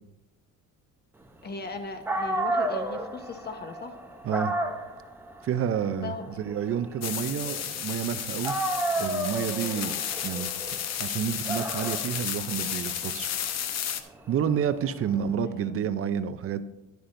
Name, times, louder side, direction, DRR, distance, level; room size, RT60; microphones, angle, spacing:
voice 1, 1.4-3.9 6.0-6.4 15.5-15.7, left 4 dB, 30° left, 6 dB, 1.1 m, -38 dB
Dog, 1.8-1.9 2.1-8.1 8.4-15.2, right 1 dB, 5° right, 0.7 m, -33 dB
voice 2, 4.2-4.5 5.4-8.6 9.0-9.9 10.2-10.5 11.0-13.3 14.3-16.6, right 8 dB, 45° right, 11 dB, 0.5 m, -29 dB
sound 1, 7.0-14.0, left 9 dB, 50° left, 0.7 m, -33 dB
11.5 x 10.5 x 2.6 m, 0.94 s
cardioid pair, 145°, 33 cm